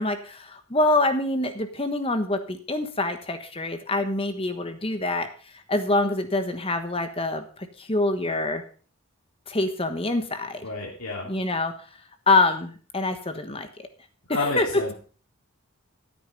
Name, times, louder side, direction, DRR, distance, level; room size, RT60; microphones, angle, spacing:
voice 1, 0.0-5.3 5.5-8.6 9.5-10.6 11.3-11.7 12.3-13.7 14.4-14.7, left 2 dB, 25° left, 8 dB, 1.3 m, -25 dB
voice 2, 10.6-11.3 14.3-14.9, left 2 dB, 80° left, -4 dB, 3.4 m, -30 dB
13.5 x 9.2 x 5.3 m, 0.41 s
head